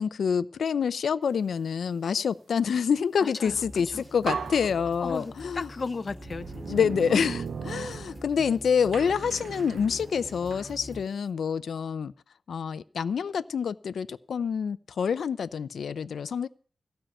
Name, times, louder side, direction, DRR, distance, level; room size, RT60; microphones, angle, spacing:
voice 1, 0.0-5.7 6.7-12.1 12.5-16.5, left 6 dB, 75° left, 0.6 m, -27 dB
voice 2, 3.2-3.6 3.9-4.0 5.0-7.3, left 4 dB, 40° left, 0.7 m, -36 dB
sound 1, 3.4-11.0, equal, 10° right, 5.4 m, -45 dB
sound 2, 3.7-3.8 4.2-5.5 6.2-8.5 8.9-10.7, right 6 dB, 80° right, 0.6 m, -37 dB
15.5 x 5.7 x 8.9 m
wide cardioid pair, 150°, 0 cm